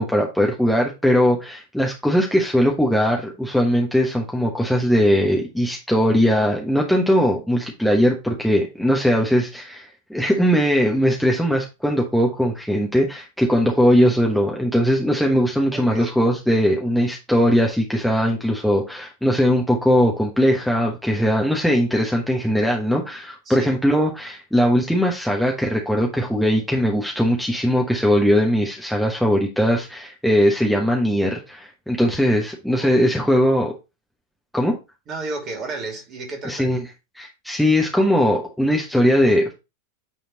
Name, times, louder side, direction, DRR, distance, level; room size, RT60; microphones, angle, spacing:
voice 1, 0.0-33.7 34.5-34.7 36.4-36.8 37.1-39.5, equal, ahead, 1.2 m, -20 dB
voice 2, 15.7-16.1 23.5-23.7 32.8-32.9 35.1-36.7, right 3 dB, 30° right, 2.6 m, -32 dB
8.8 x 3.6 x 4.1 m
figure-of-eight pair, 90°, 0 cm